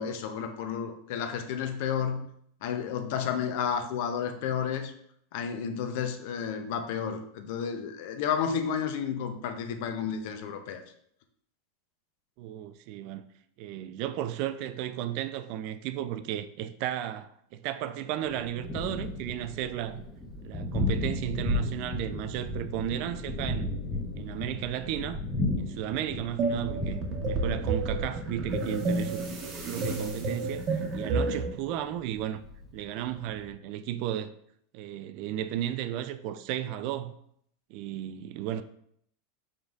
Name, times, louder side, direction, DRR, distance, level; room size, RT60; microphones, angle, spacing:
voice 1, 0.0-2.3 2.6-4.9 5.3-10.8, left 7 dB, 60° left, 0.6 m, -31 dB
voice 2, 12.4-13.2 13.6-20.0 20.4-23.7 24.2-25.2 25.6-29.2 29.6-32.4 32.7-34.3 34.7-37.1 37.7-38.6, right 11 dB, 55° right, 0.3 m, -34 dB
Thunder, 18.2-33.5, left 2 dB, 10° left, 0.8 m, -35 dB
sound 1, 26.4-31.5, right 3 dB, 35° right, 0.9 m, -30 dB
5.0 x 3.9 x 2.4 m
supercardioid pair, 135°, 0 cm